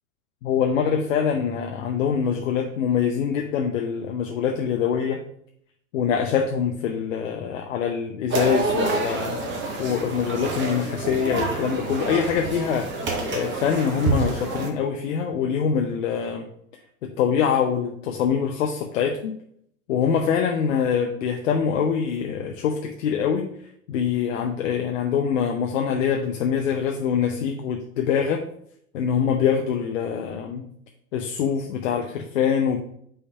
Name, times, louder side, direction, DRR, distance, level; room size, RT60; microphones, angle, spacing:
voice 1, 0.4-5.2 5.9-9.4 9.8-16.5 17.0-19.4 19.9-23.5 23.9-28.4 28.9-30.7 31.1-32.8, left 7 dB, 65° left, 3 dB, 0.8 m, -24 dB
sound 1, 8.3-14.7, right 3 dB, 25° right, 1.3 m, -27 dB
5.6 x 3.3 x 5.3 m, 0.69 s
hypercardioid pair, 95°, 41 cm